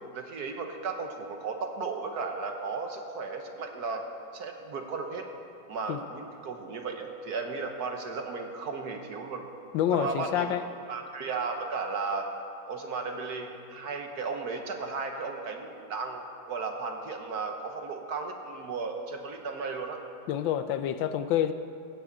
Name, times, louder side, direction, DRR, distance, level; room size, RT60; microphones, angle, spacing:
voice 1, 0.1-4.1 4.3-5.2 5.7-9.4 9.9-10.5 10.9-12.3 12.7-20.0, right 4 dB, 60° right, 4 dB, 1.5 m, -35 dB
voice 2, 9.7-10.6 20.3-21.5, left 10 dB, 80° left, 11 dB, 1.4 m, -27 dB
15.5 x 6.3 x 8.7 m, 2.5 s
omnidirectional pair, 2.1 m